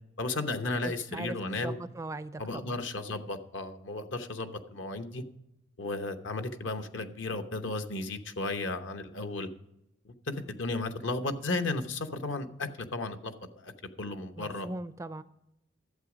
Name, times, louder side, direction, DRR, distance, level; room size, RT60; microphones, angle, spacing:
voice 1, 0.2-1.8 2.4-5.2 5.8-9.5 10.0-13.3 13.6-13.7 14.0-14.7, left 2 dB, 70° left, 8 dB, 1.0 m, -34 dB
voice 2, 0.8-2.8 14.4-15.2, right 2 dB, 15° right, 13 dB, 0.4 m, -40 dB
12.0 x 8.0 x 5.0 m, 0.85 s
head